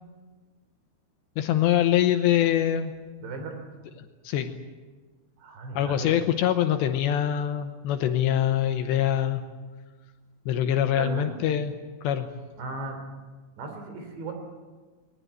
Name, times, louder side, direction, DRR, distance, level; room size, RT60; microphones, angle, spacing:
voice 1, 1.4-2.9 4.2-4.5 5.7-9.4 10.5-11.7 12.0-12.3, left 11 dB, 75° left, 8 dB, 2.8 m, -24 dB
voice 2, 3.2-3.6 5.4-6.2 10.9-11.3 12.6-13.0 13.6-14.3, right 3 dB, 65° right, 5 dB, 5.4 m, -36 dB
20.5 x 19.5 x 9.2 m, 1.4 s
omnidirectional pair, 5.6 m